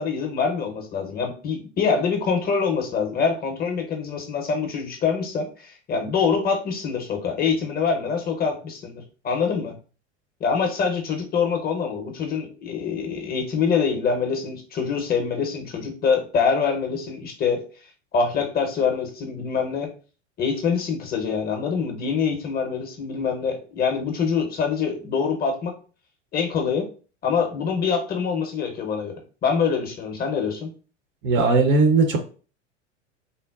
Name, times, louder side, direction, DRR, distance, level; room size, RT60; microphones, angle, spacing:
voice 1, 0.0-9.7 10.4-17.6 18.1-19.9 20.4-25.7 26.3-26.9 27.2-30.7, left 6 dB, 25° left, 3 dB, 0.7 m, -25 dB
voice 2, 31.2-32.2, right 3 dB, 30° right, 4 dB, 0.6 m, -18 dB
3.7 x 2.0 x 2.3 m, 0.37 s
hypercardioid pair, 90°, 37 cm